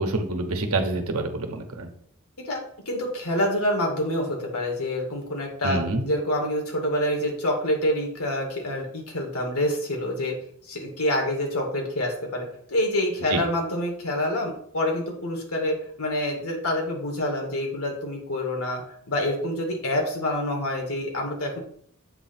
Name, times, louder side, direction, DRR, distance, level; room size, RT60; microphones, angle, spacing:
voice 1, 0.0-1.9 5.6-6.0 13.3-13.4, right 2 dB, 75° right, 5 dB, 1.1 m, -27 dB
voice 2, 2.9-10.3 10.6-18.8 19.1-21.6, left 1 dB, 80° left, 1 dB, 2.1 m, -27 dB
8.0 x 2.9 x 5.9 m, 0.64 s
head